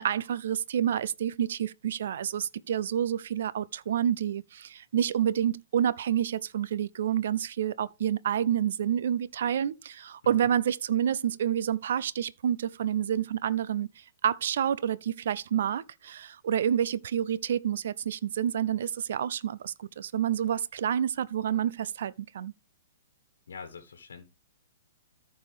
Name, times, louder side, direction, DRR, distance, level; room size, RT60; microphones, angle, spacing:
voice 1, 0.0-13.9 14.2-22.5, right 9 dB, 60° right, 0.5 m, -28 dB
voice 2, 23.5-24.3, left 5 dB, 65° left, 1.4 m, -44 dB
14.0 x 4.7 x 3.4 m
figure-of-eight pair, 115°, 0 cm